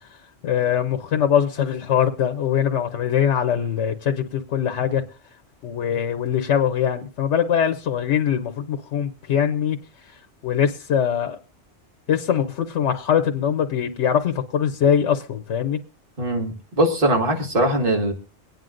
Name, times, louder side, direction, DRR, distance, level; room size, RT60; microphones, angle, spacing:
voice 1, 0.4-5.0 5.6-11.4 12.1-15.8, left 8 dB, 85° left, 6 dB, 1.0 m, -22 dB
voice 2, 16.2-18.1, right 1 dB, 50° right, 3 dB, 2.0 m, -21 dB
24.0 x 9.2 x 2.5 m, 0.34 s
omnidirectional pair, 1.2 m